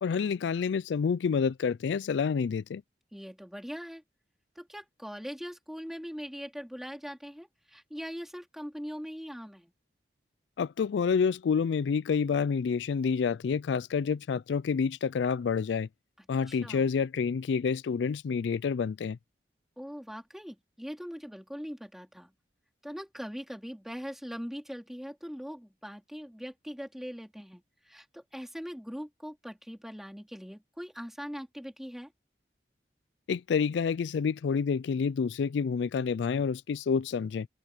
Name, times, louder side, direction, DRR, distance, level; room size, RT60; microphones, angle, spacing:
voice 1, 0.0-2.8 10.6-15.9 16.3-19.2 33.3-37.5, left 6 dB, 85° left, 0.4 m, -28 dB
voice 2, 3.1-4.0 4.6-9.7 16.2-16.8 19.8-22.3 22.8-32.1, equal, ahead, 3.6 m, -41 dB
head